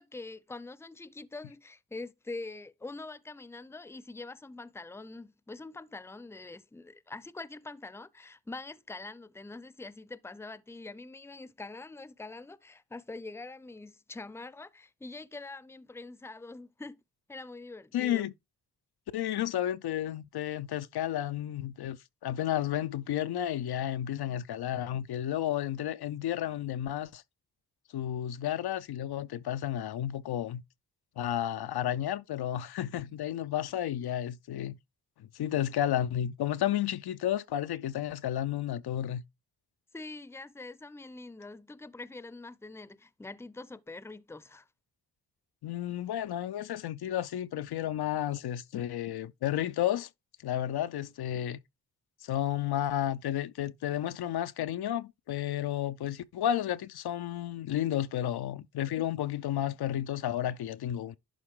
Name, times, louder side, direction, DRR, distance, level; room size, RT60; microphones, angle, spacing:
voice 1, 0.0-17.0 17.3-18.3 39.9-44.7, left 3 dB, 5° left, 0.6 m, -44 dB
voice 2, 17.9-18.3 19.1-27.2 27.9-30.6 31.2-34.8 35.2-39.2 45.6-50.1 50.4-51.6 52.2-61.2, left 11 dB, 75° left, 0.6 m, -32 dB
11.0 x 3.8 x 3.7 m
cardioid pair, 50°, 38 cm